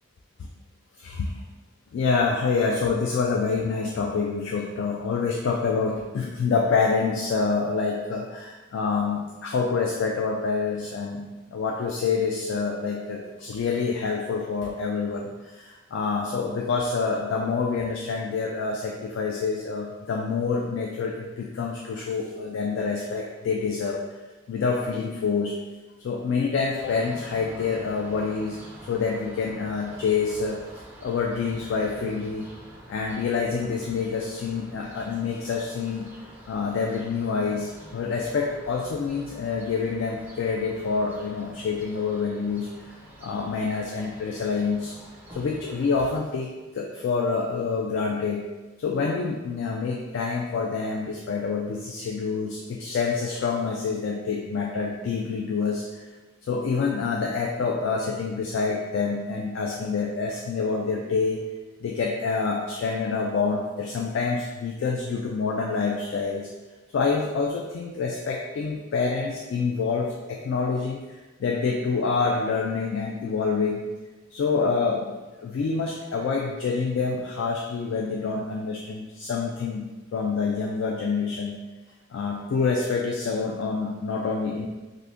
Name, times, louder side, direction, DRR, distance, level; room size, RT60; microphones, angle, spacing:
voice 1, 1.0-1.3 1.9-24.0 24.5-25.5 26.0-30.6 31.0-32.5 32.9-36.1 36.5-42.7 43.2-45.0 45.3-46.5 46.7-48.4 48.8-56.1 56.4-61.4 61.8-66.5 66.9-73.8 74.3-75.2 75.4-81.6 82.1-84.7, left 4 dB, 65° left, -1 dB, 0.3 m, -27 dB
sound 1, 26.8-46.2, right 1 dB, 10° right, 0.6 m, -47 dB
2.5 x 2.5 x 3.5 m, 1.2 s
head